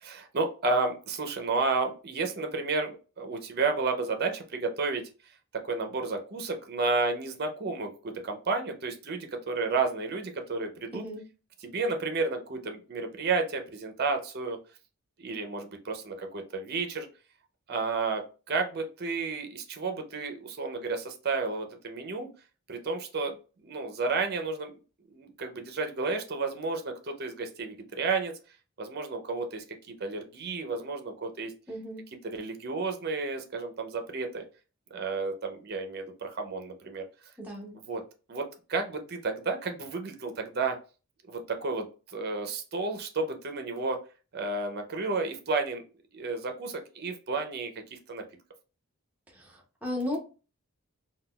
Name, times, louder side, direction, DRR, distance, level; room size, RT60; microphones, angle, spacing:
voice 1, 0.0-5.0 5.6-11.0 11.6-14.6 15.2-17.1 17.7-22.3 22.7-23.4 23.6-24.7 25.1-28.3 28.8-31.5 32.2-34.4 34.9-37.0 37.9-38.0 38.3-40.7 41.3-44.0 44.3-45.8 46.1-48.2, right 3 dB, 45° right, 0.5 m, -32 dB
voice 2, 10.9-11.2 31.7-32.0 37.4-37.8 49.3-50.2, left 1 dB, 5° right, 0.6 m, -35 dB
3.8 x 2.2 x 2.2 m
head